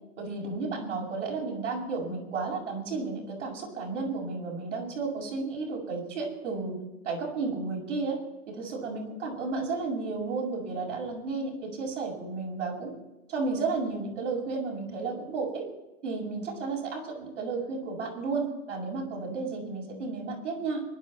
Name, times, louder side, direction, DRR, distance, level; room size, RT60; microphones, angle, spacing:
voice 1, 0.2-6.8 7.0-8.2 8.5-12.9 13.3-15.7 16.0-20.8, right 4 dB, 75° right, 0 dB, 7.3 m, -33 dB
23.5 x 12.0 x 4.5 m, 0.96 s
hypercardioid pair, 110°, 37 cm